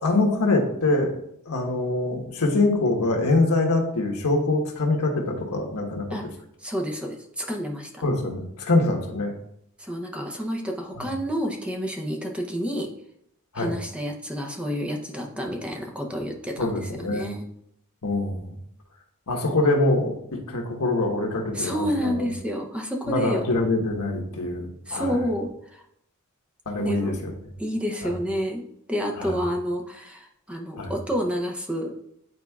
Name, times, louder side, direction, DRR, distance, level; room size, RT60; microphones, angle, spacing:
voice 1, 0.0-1.1 1.4-6.1 8.0-9.3 11.0-11.1 13.5-13.7 16.6-17.3 18.0-18.6 19.3-22.3 23.1-25.2 26.7-27.3 29.2-29.4 30.8-30.9, left 2 dB, 85° left, 1 dB, 1.3 m, -24 dB
voice 2, 6.6-8.0 9.8-12.9 13.5-17.5 21.5-23.5 24.9-25.8 26.8-27.2 27.6-31.9, equal, 5° right, 1 dB, 0.7 m, -29 dB
9.3 x 4.4 x 2.4 m, 0.73 s
head